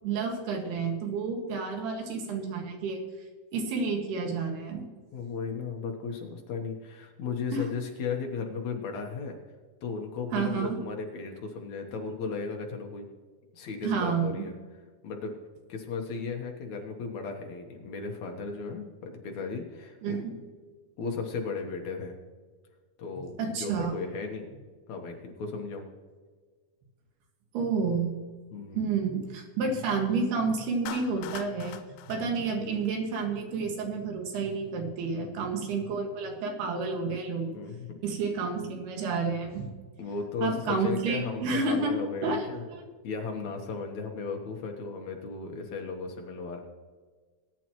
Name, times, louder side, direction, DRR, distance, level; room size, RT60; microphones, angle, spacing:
voice 1, 0.0-3.0 3.5-4.9 7.5-7.6 10.3-10.8 13.8-14.4 20.0-20.3 23.4-23.9 27.5-28.1 28.8-31.8 32.1-37.5 38.0-39.7 40.4-41.9 42.2-42.4, right 4 dB, 85° right, 2 dB, 3.8 m, -30 dB
voice 2, 5.1-9.4 9.8-13.1 13.5-14.5 15.0-15.4 15.7-20.2 21.0-22.2 23.0-24.5 24.9-25.9 28.5-28.9 35.1-35.5 37.5-38.0 40.0-42.6 43.0-46.6, left 4 dB, 65° left, 2 dB, 2.0 m, -35 dB
Clapping, 30.9-33.3, left 10 dB, 90° left, 2.7 m, -43 dB
20.0 x 10.0 x 3.0 m, 1.5 s
omnidirectional pair, 4.4 m